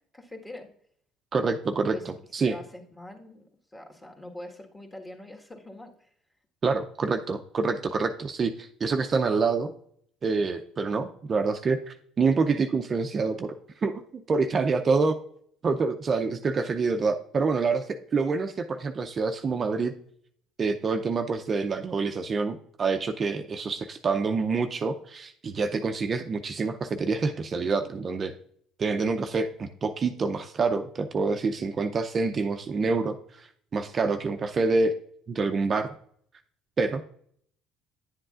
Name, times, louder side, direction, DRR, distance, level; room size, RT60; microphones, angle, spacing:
voice 1, 0.1-0.7 1.9-2.1 2.4-6.1, left 1 dB, 15° left, 1 dB, 1.6 m, -44 dB
voice 2, 1.3-2.6 6.6-9.7 10.2-13.5 13.8-15.2 15.6-17.8 18.1-19.9 20.6-28.3 28.8-34.9 35.3-35.9 36.8-37.0, right 4 dB, 35° right, 6 dB, 0.5 m, -27 dB
10.0 x 7.7 x 2.5 m, 0.64 s
supercardioid pair, 80°, 0 cm